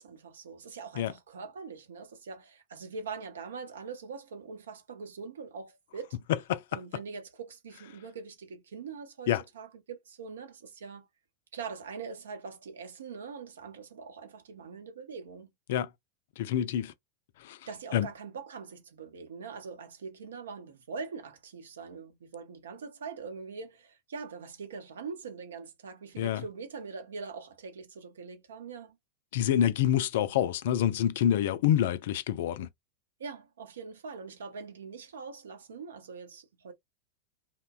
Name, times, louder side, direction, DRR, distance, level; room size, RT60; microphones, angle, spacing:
voice 1, 0.0-6.2 6.7-11.1 11.5-15.5 17.7-29.0 33.2-36.7, right 5 dB, 65° right, 0.7 m, -43 dB
voice 2, 16.4-16.9 17.4-17.6 17.9-18.1 26.2-26.4 29.3-32.7, left 10 dB, 55° left, 0.3 m, -27 dB
2.9 x 2.1 x 2.3 m
figure-of-eight pair, 90°, 0 cm